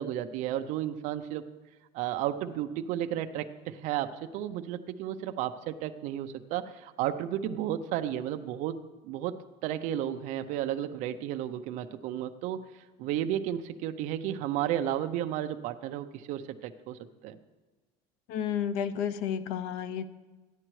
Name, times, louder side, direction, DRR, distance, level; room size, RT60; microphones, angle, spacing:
voice 1, 0.0-1.4 1.9-12.6 13.0-17.4, right 11 dB, 55° right, 8 dB, 0.5 m, -33 dB
voice 2, 18.3-20.1, left 8 dB, 85° left, 13 dB, 0.5 m, -31 dB
14.5 x 9.8 x 3.1 m, 1.2 s
cardioid pair, 170°, 15 cm